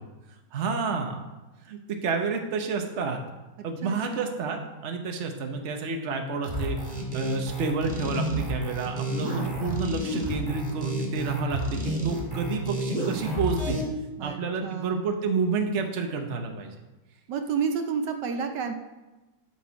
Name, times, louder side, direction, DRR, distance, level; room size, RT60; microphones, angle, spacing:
voice 1, 0.5-1.2 1.6-3.2 3.6-13.8 14.2-16.7, right 4 dB, 45° right, 4 dB, 1.1 m, -30 dB
voice 2, 3.8-4.3 14.2-15.0 17.3-18.7, right 6 dB, 75° right, 6 dB, 1.3 m, -30 dB
sound 1, 6.4-13.8, right 1 dB, 20° right, 1.9 m, -30 dB
12.5 x 4.7 x 5.7 m, 1.1 s
omnidirectional pair, 2.0 m